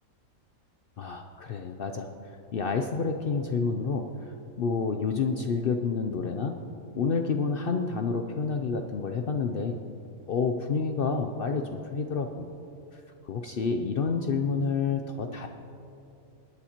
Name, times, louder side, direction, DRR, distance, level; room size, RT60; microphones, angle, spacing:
voice 1, 1.0-2.1 2.5-4.1 4.6-6.6 6.9-9.8 10.3-12.5 12.9-13.0 13.3-15.5, left 5 dB, 70° left, 5 dB, 0.5 m, -29 dB
19.5 x 9.7 x 2.9 m, 2.8 s
omnidirectional pair, 1.5 m